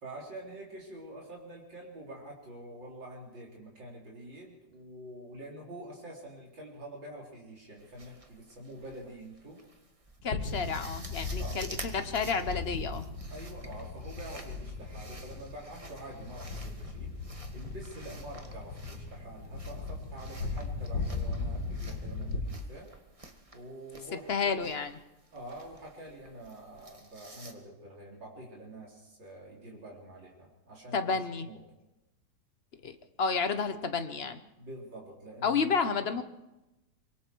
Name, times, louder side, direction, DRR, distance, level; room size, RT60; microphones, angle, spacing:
voice 1, 0.0-9.6 11.4-11.6 13.3-17.1 17.5-22.9 23.5-24.7 25.3-31.6 34.6-35.8, right 1 dB, 90° right, -3 dB, 4.7 m, -46 dB
sound 1, 7.8-27.5, right 2 dB, 20° right, 1.6 m, -51 dB
sound 2, 10.2-22.4, left 3 dB, 70° left, 3.1 m, -38 dB
voice 2, 10.2-11.7 11.9-13.0 24.3-24.9 30.9-31.5 32.8-34.4 35.4-36.2, left 5 dB, 40° left, 9 dB, 1.1 m, -30 dB
24.5 x 23.0 x 4.7 m, 0.98 s
omnidirectional pair, 2.0 m